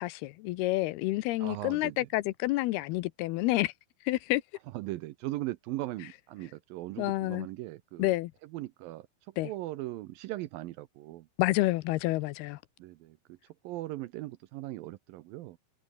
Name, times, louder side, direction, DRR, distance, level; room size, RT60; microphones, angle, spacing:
voice 1, 0.0-3.7 4.1-4.4 7.0-7.5 8.0-8.3 9.4-9.5 11.4-12.6, left 18 dB, 80° left, 2.6 m, -29 dB
voice 2, 1.4-2.1 4.7-8.1 8.4-9.1 9.4-11.3 12.8-13.4 13.6-15.6, right 17 dB, 80° right, 2.2 m, -39 dB
omnidirectional pair, 4.7 m